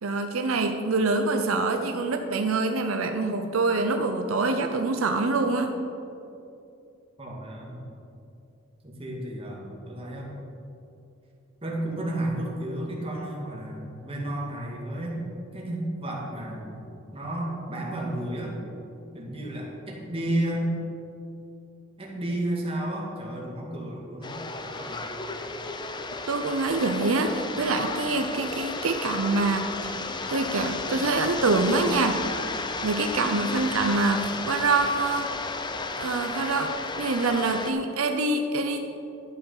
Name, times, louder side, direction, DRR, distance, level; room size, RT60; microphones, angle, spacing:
voice 1, 0.0-5.7 26.3-32.2 32.8-35.3 35.9-38.8, right 3 dB, 85° right, 6 dB, 0.7 m, -25 dB
voice 2, 7.2-7.8 8.8-10.4 11.6-15.2 15.5-16.8 17.1-18.6 19.1-20.7 22.0-24.4 24.6-25.1, right 1 dB, 30° right, -3 dB, 2.0 m, -32 dB
sound 1, 24.2-37.7, left 3 dB, 20° left, 0.6 m, -33 dB
11.5 x 7.3 x 5.6 m, 2.7 s
head